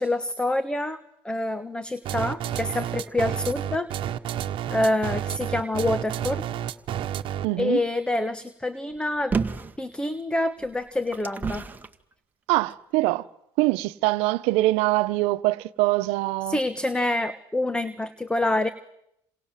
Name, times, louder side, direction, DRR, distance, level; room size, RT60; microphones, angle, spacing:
voice 1, 0.0-3.9 4.7-6.4 7.6-9.3 9.8-11.7 16.5-18.7, left 1 dB, 10° left, 1.4 m, -26 dB
sound 1, 2.1-7.6, right 10 dB, 55° right, 1.5 m, -30 dB
voice 2, 7.4-7.8 12.5-13.3 13.6-16.6, right 19 dB, 80° right, 1.1 m, -23 dB
sound 2, 9.3-9.8 10.6-11.9 12.7-12.8, right 5 dB, 15° right, 1.9 m, -29 dB
28.0 x 27.0 x 7.6 m
supercardioid pair, 105°, 10 cm